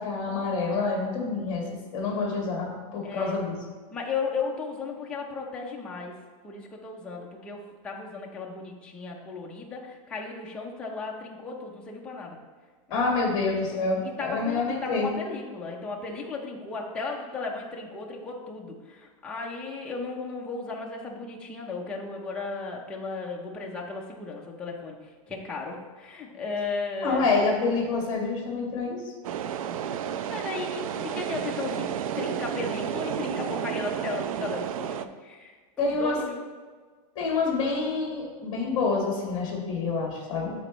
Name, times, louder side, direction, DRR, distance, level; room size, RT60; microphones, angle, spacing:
voice 1, 0.0-3.5 12.9-15.1 27.0-29.0 35.8-36.2 37.1-40.5, left 3 dB, 25° left, -1 dB, 1.5 m, -27 dB
voice 2, 3.0-3.3 3.9-6.2 6.4-12.4 12.9-13.1 13.7-27.4 29.9-30.0 30.3-31.9 32.1-36.4, left 4 dB, 5° left, -2 dB, 0.5 m, -35 dB
sound 1, 29.2-35.1, right 9 dB, 75° right, 0.4 m, -31 dB
12.0 x 4.2 x 3.0 m, 1.5 s
supercardioid pair, 180°, 18 cm